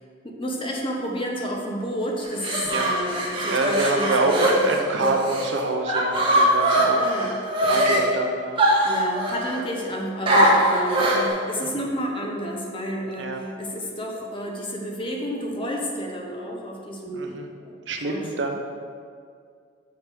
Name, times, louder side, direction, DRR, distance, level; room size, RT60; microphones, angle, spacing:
voice 1, 0.2-4.7 5.0-5.1 7.0-7.4 7.6-8.0 8.8-17.3 17.6-17.8 18.0-18.2 18.5-18.6, equal, 25° left, 0 dB, 0.9 m, -30 dB
sound 1, 2.2-5.5 5.9-8.0 8.6-9.6 10.3-11.3, right 1 dB, 25° right, 1.3 m, -21 dB
voice 2, 3.4-7.1 7.6-8.6 11.6-11.8 13.2-13.4 17.1-17.5 17.9-18.5, right 2 dB, 70° right, 3 dB, 0.7 m, -26 dB
6.4 x 5.8 x 5.0 m, 2.2 s
head